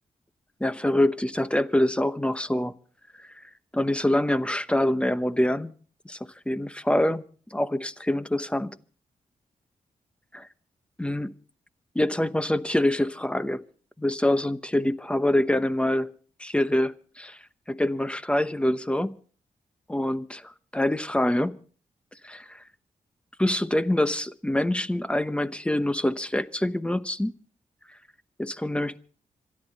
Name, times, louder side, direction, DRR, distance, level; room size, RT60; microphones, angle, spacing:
voice 1, 0.6-2.7 3.7-5.7 6.0-6.2 6.5-7.2 7.5-8.7 10.3-10.5 11.0-11.3 11.9-13.6 14.0-16.1 16.4-17.4 17.7-19.1 19.9-21.6 22.2-22.6 23.4-27.3 28.4-29.0, left 1 dB, 10° left, 0.9 m, -25 dB
26.5 x 11.0 x 4.0 m
cardioid pair, 85°, 14 cm